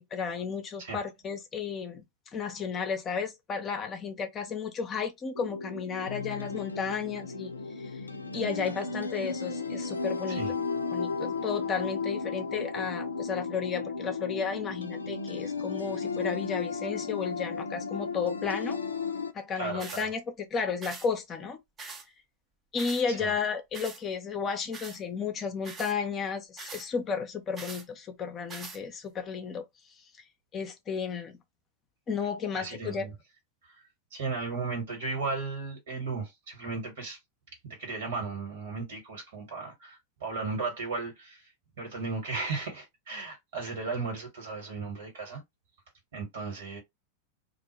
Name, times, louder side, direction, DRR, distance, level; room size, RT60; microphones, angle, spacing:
voice 1, 0.0-2.0 2.3-7.9 8.3-10.4 10.9-18.8 19.3-21.6 22.7-29.6 30.5-31.4 32.1-33.1, left 6 dB, 25° left, 0.6 m, -33 dB
sound 1, 5.3-19.3, left 4 dB, 80° left, 0.3 m, -34 dB
voice 2, 19.5-20.0 23.2-23.3 32.5-33.1 34.1-37.2 37.6-41.4 41.8-45.4 46.1-46.8, right 4 dB, 60° right, 1.5 m, -35 dB
sound 2, 19.8-20.1 20.8-21.1 21.8-22.1 22.8-23.0 23.7-24.0 24.7-25.0 25.6-25.9 26.6-26.9 27.6-27.8 28.5-28.8, right 4 dB, 25° right, 0.7 m, -42 dB
2.4 x 2.1 x 3.1 m
figure-of-eight pair, 90°, 0 cm